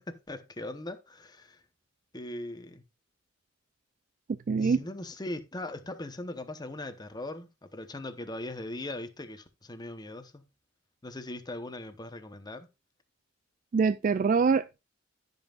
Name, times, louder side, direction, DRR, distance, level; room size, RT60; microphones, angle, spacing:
voice 1, 0.0-1.6 2.1-2.8 4.6-10.4 11.0-12.7, left 1 dB, 20° left, 0.9 m, -40 dB
voice 2, 4.5-4.8 13.7-14.8, right 5 dB, 40° right, 0.3 m, -24 dB
16.0 x 5.4 x 2.4 m
head